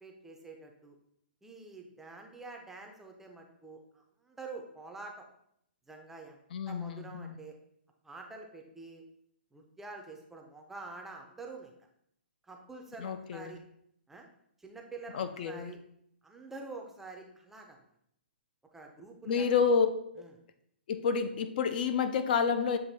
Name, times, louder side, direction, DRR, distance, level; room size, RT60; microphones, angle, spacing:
voice 1, 0.0-0.9 1.4-5.3 5.9-7.5 8.0-9.0 9.5-11.7 12.4-13.6 14.1-14.3 14.6-15.8 16.2-17.8 18.7-19.7 20.2-20.3, right 3 dB, 5° right, 2 dB, 0.5 m, -47 dB
voice 2, 6.5-7.4 13.0-13.5 15.1-15.7 19.3-19.9 20.9-22.8, left 6 dB, 50° left, 10 dB, 0.4 m, -29 dB
7.4 x 2.6 x 2.7 m, 0.73 s
hypercardioid pair, 140°, 6 cm